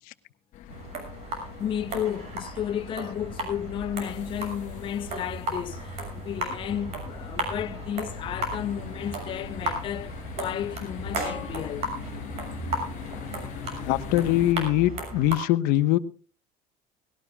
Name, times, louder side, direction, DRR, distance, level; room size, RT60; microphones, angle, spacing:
sound 1, 0.5-14.6, left 9 dB, 55° left, 1.4 m, -42 dB
sound 2, 0.7-15.4, right 1 dB, 45° right, 6.6 m, -35 dB
voice 1, 1.6-11.9, left 10 dB, 35° left, 0.6 m, -33 dB
voice 2, 13.8-16.0, left 14 dB, 75° left, 1.2 m, -22 dB
19.5 x 17.5 x 2.3 m
cardioid pair, 150°, 15 cm